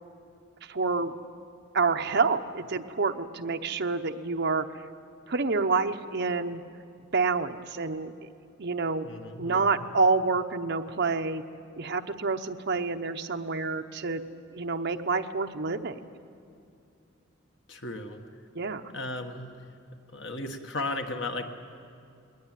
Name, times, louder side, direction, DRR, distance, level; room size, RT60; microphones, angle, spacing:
voice 1, 0.6-1.1 1.7-4.6 5.3-6.6 7.1-8.1 8.6-9.1 9.4-11.4 11.8-14.2 14.5-16.1 18.5-18.9, right 4 dB, 55° right, 6 dB, 0.9 m, -28 dB
voice 2, 9.0-9.9 17.7-18.2 18.9-19.6 20.1-21.5, left 2 dB, 60° left, 4 dB, 1.5 m, -35 dB
20.5 x 19.5 x 9.1 m, 2.5 s
head